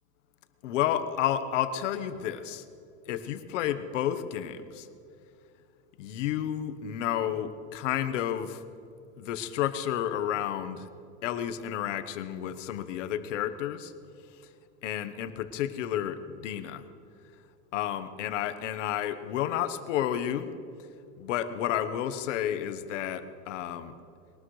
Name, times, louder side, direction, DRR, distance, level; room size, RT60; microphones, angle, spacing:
voice 1, 0.6-2.6 3.1-4.9 6.0-8.6 9.2-10.9 11.2-13.9 14.8-16.8 17.7-20.6 21.2-23.9, left 10 dB, 85° left, 10 dB, 1.2 m, -31 dB
22.0 x 19.0 x 3.3 m, 2.5 s
supercardioid pair, 160°, 36 cm